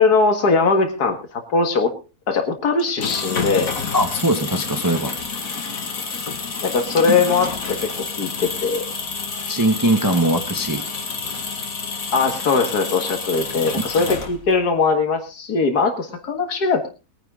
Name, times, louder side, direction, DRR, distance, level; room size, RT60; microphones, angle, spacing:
voice 1, 0.0-1.9 2.3-3.7 6.6-8.8 12.1-16.9, left 4 dB, 90° left, 6 dB, 2.3 m, -20 dB
sound 1, 2.8-14.6, left 5 dB, 65° left, 2.3 m, -29 dB
voice 2, 3.9-5.1 9.5-10.8 13.8-13.9, right 1 dB, 15° right, 6 dB, 1.1 m, -20 dB
21.5 x 10.0 x 3.7 m, 0.32 s
omnidirectional pair, 1.6 m